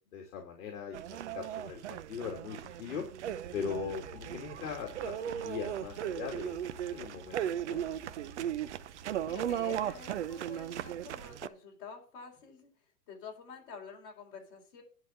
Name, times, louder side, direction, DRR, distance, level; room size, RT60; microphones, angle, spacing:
voice 1, 0.1-1.0 1.3-3.0 3.5-7.8, left 6 dB, 55° left, 1 dB, 2.4 m, -40 dB
sound 1, 0.9-11.5, right 10 dB, 45° right, 0.6 m, -37 dB
sound 2, 3.1-10.9, right 1 dB, 20° right, 2.3 m, -55 dB
voice 2, 9.3-12.7 13.1-14.8, left 5 dB, 35° left, -1 dB, 4.2 m, -48 dB
11.0 x 4.1 x 7.8 m, 0.40 s
hypercardioid pair, 165°, 48 cm